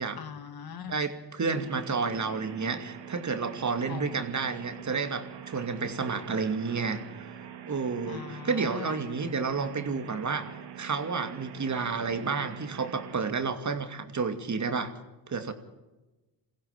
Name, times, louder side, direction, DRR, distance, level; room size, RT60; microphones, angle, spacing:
voice 1, 0.2-1.0 3.9-4.2 8.0-9.0, left 8 dB, 50° left, 10 dB, 1.6 m, -41 dB
voice 2, 0.8-7.0 7.6-14.9 15.3-15.5, right 4 dB, 40° right, 7 dB, 2.6 m, -31 dB
sound 1, 1.5-13.2, right 10 dB, 65° right, 2.5 m, -44 dB
22.5 x 16.0 x 7.3 m, 1.1 s
supercardioid pair, 65°, 45 cm